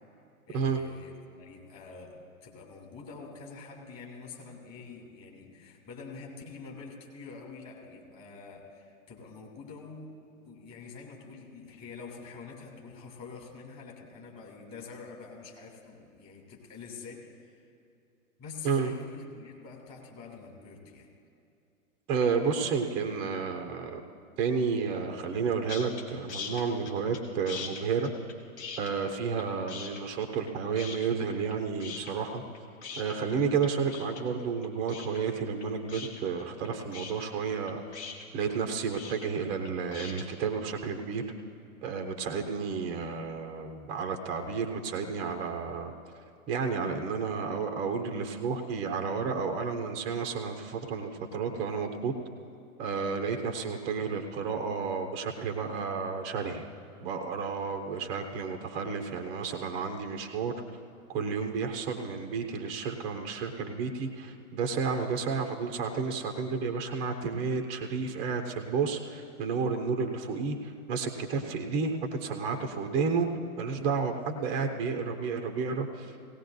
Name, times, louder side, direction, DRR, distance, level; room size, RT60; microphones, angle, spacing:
voice 1, 0.5-10.1 10.4-17.6 18.4-21.1, left 4 dB, 30° left, -1 dB, 2.7 m, -46 dB
voice 2, 22.1-24.0 24.4-28.1 28.8-32.4 33.0-38.0 38.3-41.2 41.8-45.9 46.5-52.1 52.8-56.6 57.0-60.5 61.1-73.3 73.6-76.1, right 5 dB, 15° right, 4 dB, 0.5 m, -31 dB
sound 1, 25.7-26.0 26.3-27.2 27.5-29.4 29.7-30.5 30.8-31.5 31.8-40.2, left 6 dB, 50° left, 1.9 m, -41 dB
18.0 x 17.5 x 2.6 m, 2.6 s
figure-of-eight pair, 115°, 45 cm